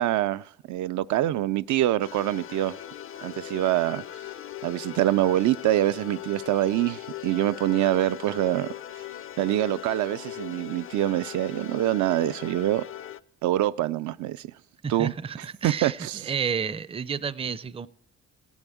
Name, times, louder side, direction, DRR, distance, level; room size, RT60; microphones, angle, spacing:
voice 1, 0.0-2.8 3.2-4.0 4.6-8.7 9.4-12.9 13.4-14.5 14.9-15.1 15.6-16.3, right 14 dB, 70° right, 0.5 m, -25 dB
sound 1, 2.0-13.2, left 12 dB, 45° left, 0.5 m, -39 dB
voice 2, 14.8-17.9, right 6 dB, 20° right, 0.5 m, -31 dB
16.0 x 7.2 x 9.1 m
cardioid pair, 90°, 30 cm